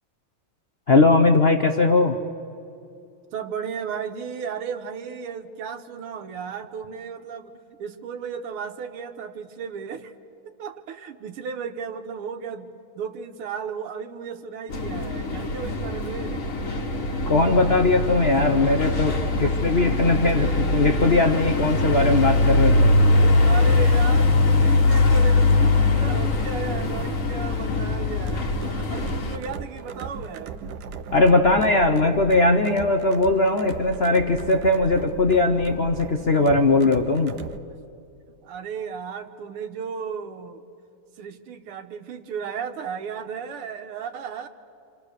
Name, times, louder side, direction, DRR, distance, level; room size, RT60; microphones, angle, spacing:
voice 1, 0.9-2.2 17.3-23.0 31.1-37.4, left 2 dB, 65° left, 5 dB, 0.6 m, -20 dB
voice 2, 3.3-7.5 7.8-10.1 10.6-16.5 19.4-19.5 20.2-20.6 23.0-30.6 38.4-40.6 41.2-44.5, right 6 dB, 85° right, 7 dB, 2.0 m, -34 dB
sound 1, 14.7-29.4, left 2 dB, 40° left, 1.6 m, -21 dB
sound 2, 28.1-37.6, right 5 dB, 60° right, 1.2 m, -37 dB
27.5 x 26.5 x 6.6 m, 2.6 s
omnidirectional pair, 2.4 m